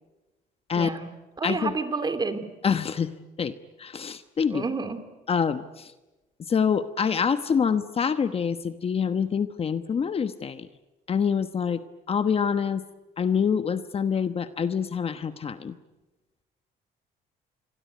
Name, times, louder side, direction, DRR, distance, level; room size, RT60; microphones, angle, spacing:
voice 1, 0.8-1.1 1.4-2.4 4.5-5.0, right 4 dB, 25° right, 10 dB, 2.9 m, -29 dB
voice 2, 1.4-1.8 2.6-3.1 3.4-3.5 3.8-4.6 5.3-5.9 6.5-10.7 11.1-11.8 12.1-12.8 13.2-15.8, left 6 dB, 35° left, 11 dB, 1.2 m, -26 dB
27.5 x 22.5 x 9.3 m, 1.1 s
cardioid pair, 110°, 17 cm